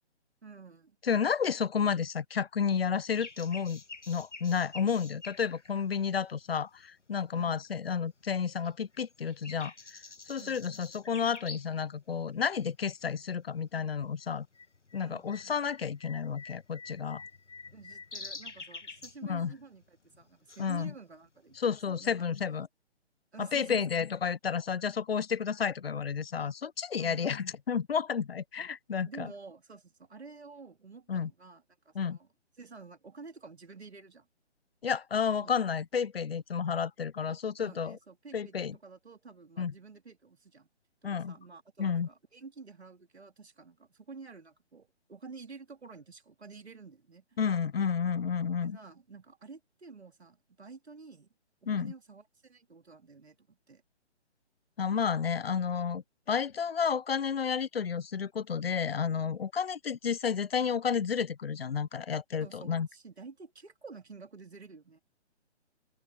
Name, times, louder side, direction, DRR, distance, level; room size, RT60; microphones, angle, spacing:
voice 1, 0.4-1.0 7.3-7.7 10.4-10.6 15.0-15.3 17.7-22.3 23.3-23.9 27.0-27.3 29.0-32.3 32.6-34.3 35.4-35.5 37.3-40.7 41.0-47.2 48.6-51.3 51.6-53.8 62.4-65.0, right 4 dB, 65° right, 3.0 m, -50 dB
voice 2, 1.0-3.8 4.1-9.7 10.3-14.5 14.9-17.2 19.2-19.5 20.6-20.9 21.6-22.7 23.4-29.3 31.1-31.3 32.0-32.2 34.8-38.0 38.3-38.7 39.6-39.7 41.0-41.3 41.8-42.1 47.4-48.8 51.7-51.9 54.8-62.9, left 6 dB, 60° left, 0.6 m, -31 dB
sound 1, 3.1-7.1 7.6-8.4 8.6-11.9 12.1-12.2 12.9-13.3 13.6-22.6, left 4 dB, 85° left, 1.1 m, -48 dB
open air
figure-of-eight pair, 140°, 35 cm